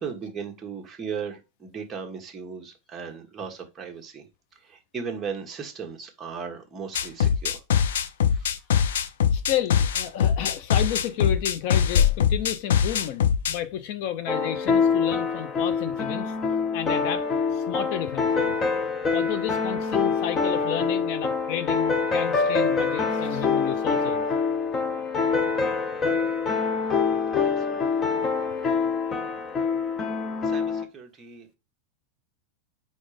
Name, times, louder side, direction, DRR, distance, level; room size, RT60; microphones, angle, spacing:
voice 1, 0.0-4.2 4.6-7.6 8.4-8.5 27.4-28.0 30.4-31.6, right 6 dB, 20° right, 1.5 m, -37 dB
sound 1, 7.0-13.6, left 8 dB, 90° left, 0.6 m, -22 dB
voice 2, 9.3-16.3 16.7-17.3 17.5-18.6 19.1-24.3 27.8-27.9 28.2-28.3, left 10 dB, 55° left, 0.7 m, -32 dB
sound 2, 14.3-30.8, left 5 dB, 25° left, 0.8 m, -25 dB
5.0 x 4.2 x 5.0 m
supercardioid pair, 145°, 0 cm